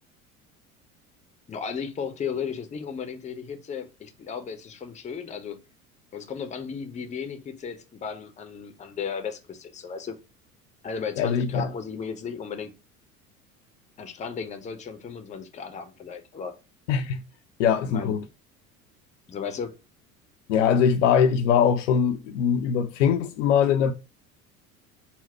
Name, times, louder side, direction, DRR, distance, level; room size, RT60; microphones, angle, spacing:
voice 1, 1.5-5.6 6.1-10.2 10.8-12.7 14.0-16.5 17.8-18.1 19.3-19.7, left 6 dB, 15° left, 0.6 m, -35 dB
voice 2, 11.2-11.7 16.9-17.2 17.6-18.2 20.5-23.9, left 7 dB, 60° left, 0.5 m, -22 dB
4.2 x 2.1 x 4.2 m
figure-of-eight pair, 70°, 43 cm